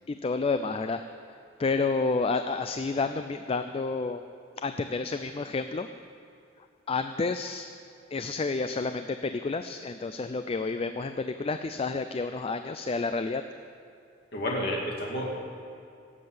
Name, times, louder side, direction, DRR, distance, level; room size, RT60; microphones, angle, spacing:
voice 1, 0.1-1.0 1.6-4.2 4.6-5.9 6.9-7.7 8.1-13.4, left 4 dB, 30° left, 9 dB, 0.4 m, -30 dB
voice 2, 14.3-15.4, equal, 55° left, -2 dB, 2.1 m, -30 dB
17.5 x 7.5 x 7.8 m, 2.5 s
head